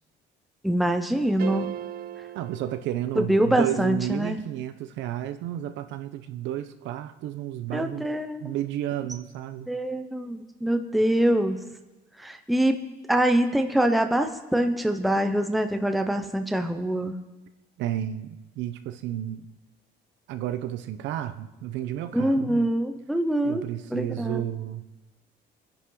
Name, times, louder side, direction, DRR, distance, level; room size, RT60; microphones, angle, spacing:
voice 1, 0.6-1.8 3.2-4.4 7.7-8.5 9.7-11.6 12.2-12.8 13.1-17.2 22.1-23.7 23.9-24.4, right 1 dB, ahead, 6 dB, 0.7 m, -24 dB
sound 1, 1.4-3.7, right 11 dB, 50° right, 0.6 m, -38 dB
voice 2, 2.3-8.1 8.4-9.7 17.8-19.4 20.3-22.7 23.4-24.8, right 12 dB, 75° right, 10 dB, 1.0 m, -32 dB
26.5 x 10.5 x 3.9 m, 1.1 s
cardioid pair, 175°, 19 cm